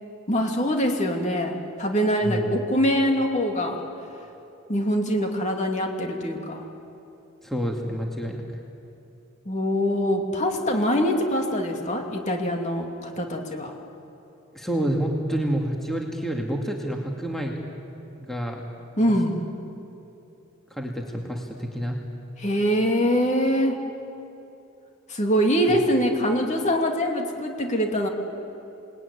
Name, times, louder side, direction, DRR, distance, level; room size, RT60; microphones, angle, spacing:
voice 1, 0.3-3.8 4.7-6.6 9.5-13.7 19.0-19.4 22.4-23.8 25.1-28.1, equal, 35° left, 2 dB, 2.7 m, -24 dB
voice 2, 7.4-8.4 14.5-17.6 18.2-18.6 20.7-22.0 25.7-25.8, equal, ahead, 0 dB, 2.2 m, -28 dB
29.0 x 20.0 x 9.7 m, 2.8 s
head